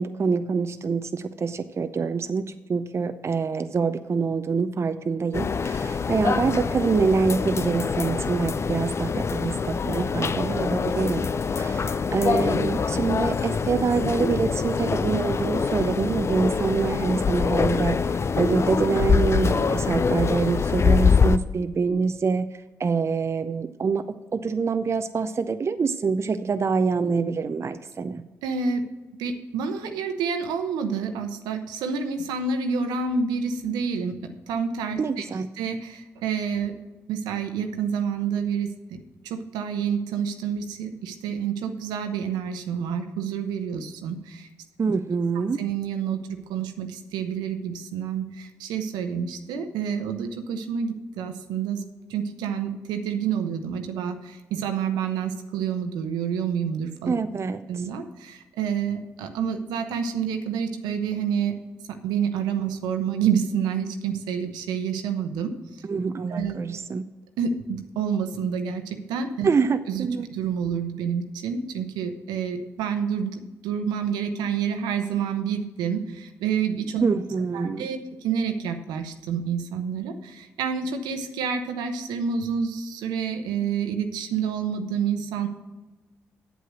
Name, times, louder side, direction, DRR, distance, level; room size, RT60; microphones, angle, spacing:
voice 1, 0.0-2.4 2.7-11.3 11.6-22.5 22.8-28.2 35.0-35.5 44.8-45.6 57.1-57.8 65.9-67.1 69.4-70.3 77.0-77.9, right 5 dB, 40° right, 10 dB, 0.6 m, -25 dB
sound 1, 5.3-21.4, left 5 dB, 40° left, 0.5 m, -24 dB
voice 2, 28.4-28.9 29.2-35.2 35.6-36.7 37.1-39.0 39.2-44.5 45.6-51.8 52.1-57.1 57.7-61.6 61.9-65.5 66.3-66.6 67.4-69.5 69.9-77.0 77.5-85.5, right 7 dB, 75° right, 7 dB, 0.9 m, -28 dB
8.3 x 7.7 x 6.3 m, 1.2 s
hypercardioid pair, 45°, 7 cm